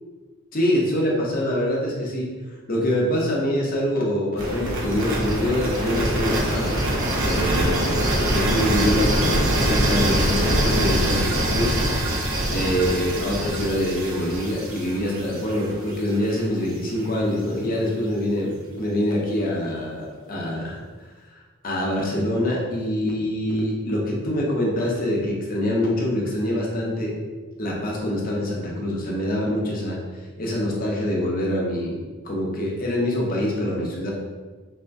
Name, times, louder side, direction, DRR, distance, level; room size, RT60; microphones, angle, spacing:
voice 1, 0.5-2.3 2.7-6.7 7.2-8.0 8.3-11.7 12.5-20.8 21.3-27.1 27.6-30.0 30.4-34.1, left 1 dB, 45° left, -2 dB, 0.8 m, -25 dB
sound 1, 4.4-16.3, right 1 dB, 80° right, 0.9 m, -23 dB
5.4 x 2.1 x 2.6 m, 1.3 s
head